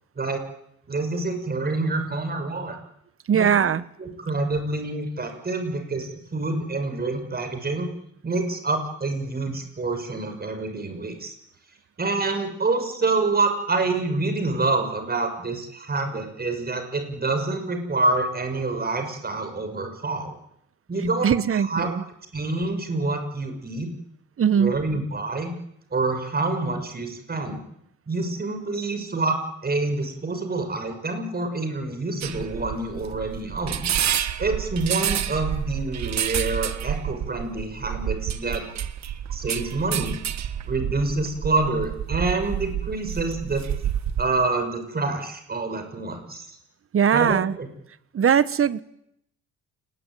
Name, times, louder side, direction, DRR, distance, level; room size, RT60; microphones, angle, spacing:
voice 1, 0.9-2.8 3.3-3.7 4.0-7.9 8.2-11.3 12.0-20.4 20.9-21.3 21.7-21.9 22.3-23.9 24.5-25.5 25.9-27.6 28.1-33.9 34.4-38.6 39.3-40.2 40.6-43.6 44.2-46.5 47.1-47.7, right 3 dB, 30° right, 7 dB, 6.4 m, -27 dB
voice 2, 3.3-3.8 21.2-22.0 24.4-24.8 46.9-47.6 48.1-48.8, right 8 dB, 45° right, 16 dB, 1.3 m, -20 dB
sound 1, 32.2-44.3, right 10 dB, 65° right, 1.6 m, -29 dB
29.0 x 20.0 x 9.3 m, 0.77 s
cardioid pair, 90°, 30 cm